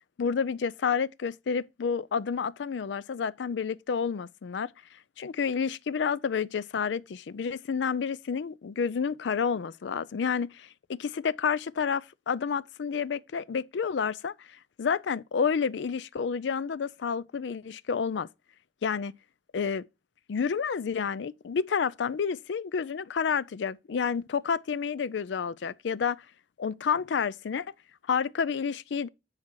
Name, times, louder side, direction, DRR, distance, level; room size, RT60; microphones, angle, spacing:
voice 1, 0.2-4.7 5.2-14.5 14.8-18.3 18.8-19.1 19.5-19.8 20.3-26.2 26.6-27.7 28.1-29.1, left 6 dB, 75° left, 0.4 m, -29 dB
9.6 x 4.3 x 4.6 m
head